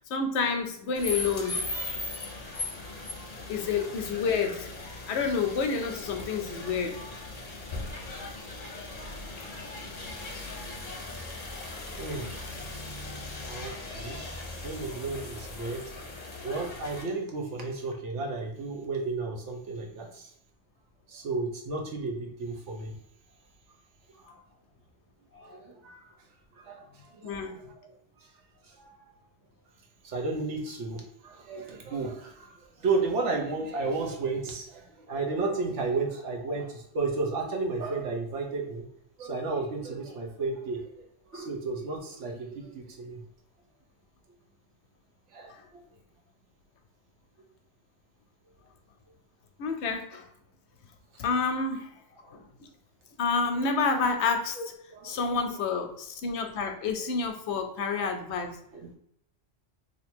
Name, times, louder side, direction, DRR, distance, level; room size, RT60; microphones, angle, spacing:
voice 1, 0.0-1.6 3.5-4.7 5.1-7.0 24.3-24.4 25.3-25.6 27.2-27.6 41.3-41.4 45.5-45.7 49.6-50.3 51.2-52.7 53.2-54.6 55.0-58.6, left 5 dB, 70° left, 6 dB, 0.8 m, -29 dB
sound 1, 0.9-17.0, left 2 dB, 40° left, 0.7 m, -38 dB
voice 2, 2.8-3.3 8.5-8.7 12.0-12.5 13.5-14.3 14.6-15.8 16.4-20.3 21.1-22.9 25.4-26.1 26.6-27.3 28.7-28.9 30.0-38.9 39.2-41.0 41.3-43.2 45.3-45.8 54.6-54.7 54.9-55.2 58.7-58.9, right 3 dB, 70° right, 1 dB, 1.1 m, -33 dB
2.9 x 2.6 x 4.3 m, 0.70 s
omnidirectional pair, 1.3 m